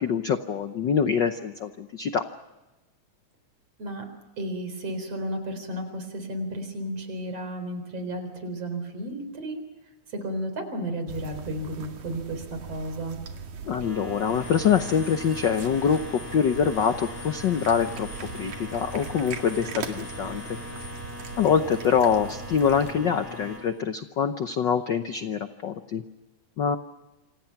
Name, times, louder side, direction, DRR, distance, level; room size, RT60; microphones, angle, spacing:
voice 1, 0.0-2.2 13.6-20.6 21.4-26.0 26.6-26.8, left 7 dB, 90° left, 8 dB, 0.9 m, -25 dB
voice 2, 4.4-9.6 10.1-13.2, right 1 dB, 55° right, 8 dB, 5.1 m, -33 dB
sound 1, 11.1-22.9, right 6 dB, 85° right, 3.5 m, -41 dB
sound 2, 13.8-23.6, left 2 dB, 55° left, 5.8 m, -40 dB
28.0 x 26.0 x 5.9 m, 1.1 s
omnidirectional pair, 3.4 m